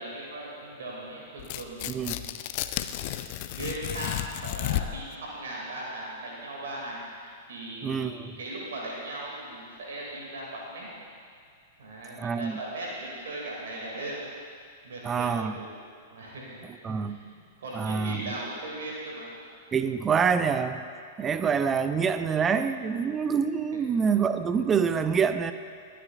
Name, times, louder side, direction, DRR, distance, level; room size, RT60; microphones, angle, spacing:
voice 1, 0.0-2.3 3.5-10.9 11.8-14.2 14.5-15.7 16.1-19.3 23.7-24.2, right 1 dB, 60° right, -4 dB, 2.8 m, -38 dB
Tearing, 1.4-5.1, left 14 dB, 45° left, 0.5 m, -33 dB
voice 2, 1.9-2.2 7.8-8.4 12.2-12.6 15.0-15.5 16.8-17.2 17.7-18.2 19.7-20.8 21.2-25.5, right 6 dB, 20° right, 10 dB, 0.6 m, -26 dB
21.0 x 10.0 x 2.6 m, 2.2 s
figure-of-eight pair, 100°, 0 cm